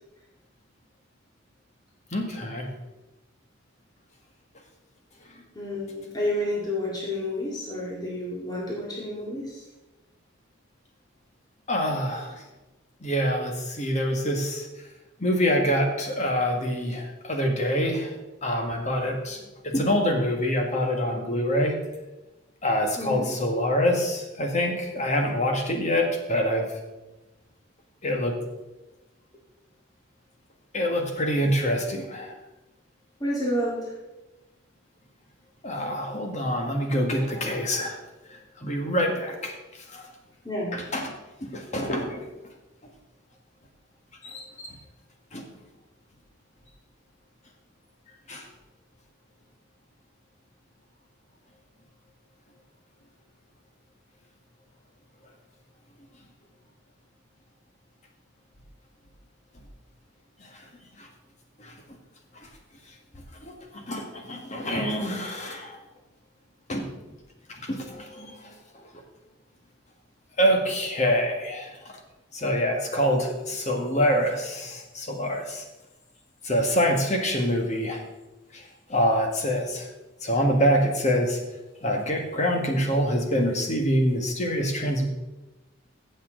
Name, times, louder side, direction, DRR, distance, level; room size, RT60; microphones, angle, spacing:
voice 1, 2.1-2.7 11.7-12.4 13.0-14.7 15.2-18.1 18.4-21.8 22.6-26.8 28.0-28.3 30.7-32.4 35.6-37.9 38.3-39.5 39.9-40.1 40.7-41.1 41.4-42.2 44.2-44.8 45.3-45.4 48.3-48.4 60.4-60.6 61.0-61.1 61.6-61.7 62.4-62.5 63.4-65.8 66.7-66.8 67.5-68.5 70.4-71.8 72.3-75.6 76.4-78.0 78.5-79.9 80.2-81.4 81.8-85.1, equal, 35° left, 2 dB, 1.7 m, -26 dB
voice 2, 5.5-9.7 23.0-23.3 33.2-34.0 40.4-40.8, left 1 dB, 20° left, -4 dB, 2.1 m, -30 dB
15.0 x 7.3 x 3.9 m, 1.0 s
head